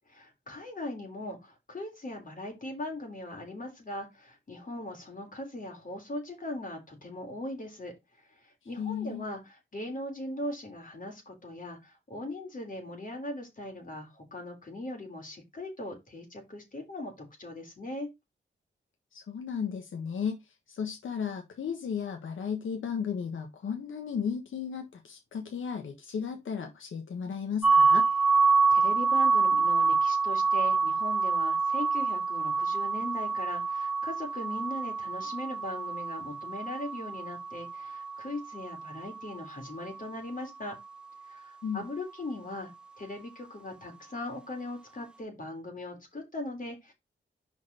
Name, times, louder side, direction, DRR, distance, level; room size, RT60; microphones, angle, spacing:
voice 1, 0.1-7.9 8.4-18.1 28.7-40.8 41.3-42.7 43.0-46.9, left 1 dB, 45° left, 3.5 m, -39 dB
voice 2, 8.8-9.2 19.1-20.4 20.7-28.1 41.6-41.9, left 7 dB, 85° left, 1.4 m, -34 dB
sound 1, 27.6-39.4, right 4 dB, 5° right, 1.0 m, -27 dB
5.3 x 4.9 x 5.4 m
cardioid pair, 85°, 20 cm